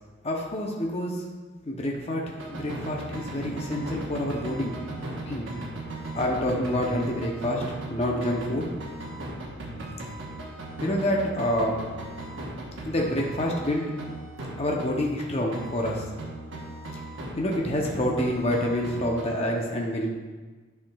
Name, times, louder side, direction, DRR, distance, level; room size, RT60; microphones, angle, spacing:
voice 1, 0.2-1.2 1.6-4.8 5.2-5.5 6.1-8.7 10.8-11.8 12.8-13.9 14.6-16.1 16.9-17.0 17.4-20.1, left 1 dB, 30° left, -1 dB, 0.7 m, -27 dB
sound 1, 2.4-15.3 15.5-19.4, right 2 dB, 70° right, 1.1 m, -38 dB
8.9 x 5.8 x 2.3 m, 1.3 s
head